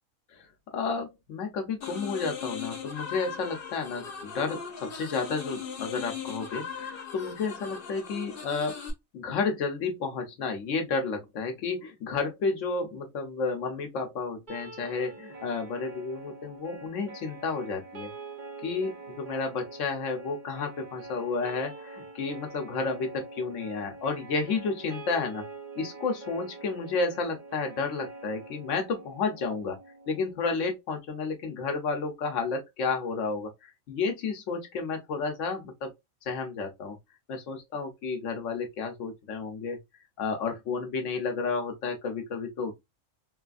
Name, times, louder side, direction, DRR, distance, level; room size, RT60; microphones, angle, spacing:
voice 1, 0.7-8.8 9.1-18.1 18.6-25.4 25.8-29.8 30.1-35.9 36.3-37.0 37.3-39.8 40.2-42.8, left 4 dB, 90° left, 1.1 m, -31 dB
sound 1, 1.8-8.9, left 6 dB, 55° left, 0.9 m, -39 dB
sound 2, 14.5-30.5, right 3 dB, 45° right, 0.9 m, -45 dB
3.3 x 2.4 x 2.3 m
omnidirectional pair, 1.3 m